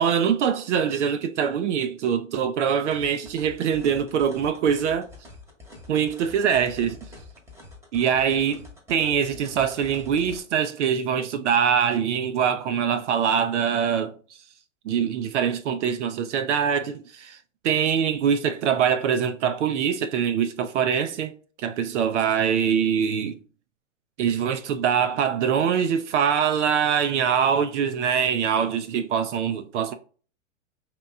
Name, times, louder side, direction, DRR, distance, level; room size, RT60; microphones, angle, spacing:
voice 1, 0.0-5.1 5.9-7.0 7.9-14.1 14.8-17.4 17.6-21.3 21.6-23.4 24.2-29.9, right 7 dB, 65° right, 0.6 m, -23 dB
sound 1, 2.9-10.4, left 2 dB, 5° right, 1.1 m, -46 dB
5.0 x 2.9 x 3.4 m
hypercardioid pair, 125°, 39 cm